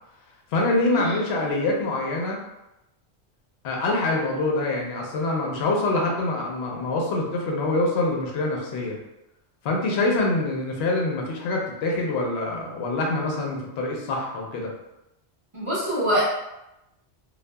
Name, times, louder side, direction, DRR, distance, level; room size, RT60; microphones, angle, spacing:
voice 1, 0.5-2.4 3.6-9.0 9.6-14.7, left 2 dB, 65° left, 0 dB, 0.8 m, -25 dB
voice 2, 15.5-16.3, equal, 30° right, -8 dB, 0.8 m, -24 dB
2.7 x 2.3 x 2.2 m, 0.91 s
omnidirectional pair, 1.2 m